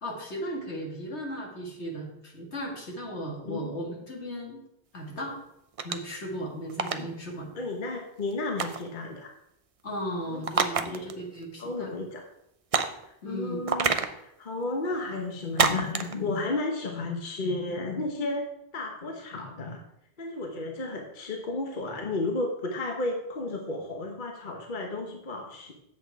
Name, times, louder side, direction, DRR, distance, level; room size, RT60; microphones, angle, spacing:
voice 1, 0.0-4.6 4.9-5.4 5.8-7.5 9.8-11.9 13.2-13.6, equal, 70° left, 0 dB, 2.2 m, -36 dB
sound 1, 5.8-6.1 6.7-7.0 8.6-8.9 10.4-11.1 11.4-11.5 12.7-13.0 13.7-14.1 15.6-16.1, right 5 dB, 40° right, 0.5 m, -26 dB
voice 2, 7.6-9.3 10.3-10.4 10.8-11.1 11.6-12.3 13.0-18.5 18.7-19.8 20.2-25.7, left 2 dB, 45° left, 2 dB, 1.2 m, -33 dB
8.1 x 7.4 x 4.6 m, 0.80 s
omnidirectional pair, 1.2 m